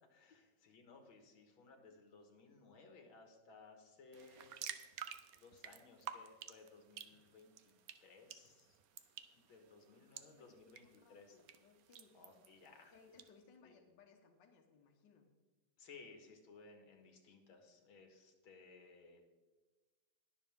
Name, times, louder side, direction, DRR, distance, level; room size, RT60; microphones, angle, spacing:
voice 1, 0.1-4.5 5.3-7.7 8.0-8.8 9.3-11.4 12.1-12.9 13.6-13.8 15.8-19.2, left 4 dB, 85° left, 4 dB, 2.4 m, -60 dB
sound 1, 4.1-13.3, right 9 dB, 65° right, 0.9 m, -53 dB
voice 2, 9.7-12.3 12.9-15.3, left 5 dB, 65° left, 2 dB, 1.7 m, -66 dB
20.5 x 7.0 x 3.6 m, 1.2 s
omnidirectional pair, 2.2 m